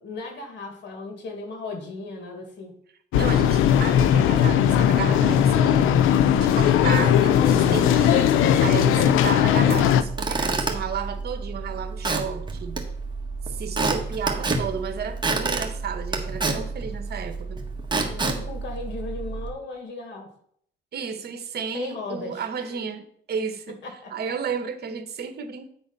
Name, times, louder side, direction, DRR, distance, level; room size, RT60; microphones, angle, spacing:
voice 1, 0.0-2.8 6.8-6.9 7.4-8.1 18.0-20.3 21.7-22.9 23.7-24.3, left 3 dB, 65° left, 4 dB, 1.9 m, -36 dB
sound 1, 3.1-10.0, left 9 dB, 85° left, 0.5 m, -18 dB
voice 2, 3.1-6.1 6.3-8.3 8.6-12.9 13.5-17.6 20.9-23.8 24.1-25.7, right 6 dB, 55° right, 9 dB, 1.2 m, -32 dB
Squeak / Wood, 9.9-19.5, right 3 dB, 25° right, 1.4 m, -29 dB
9.2 x 3.9 x 5.4 m, 0.65 s
cardioid pair, 90°, 20 cm